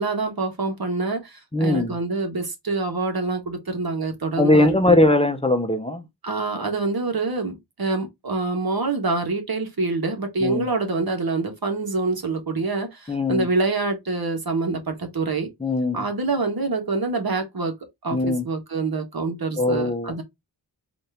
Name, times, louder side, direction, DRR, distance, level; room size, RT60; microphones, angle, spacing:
voice 1, 0.0-5.1 6.2-15.5 15.9-17.7 18.0-20.2, right 3 dB, 60° right, 1.3 m, -26 dB
voice 2, 1.5-2.0 4.4-6.0 10.4-10.7 13.1-13.5 15.6-16.1 18.1-18.4 19.6-20.1, left 2 dB, 15° left, 0.6 m, -20 dB
4.2 x 2.5 x 3.3 m
wide cardioid pair, 70°, 42 cm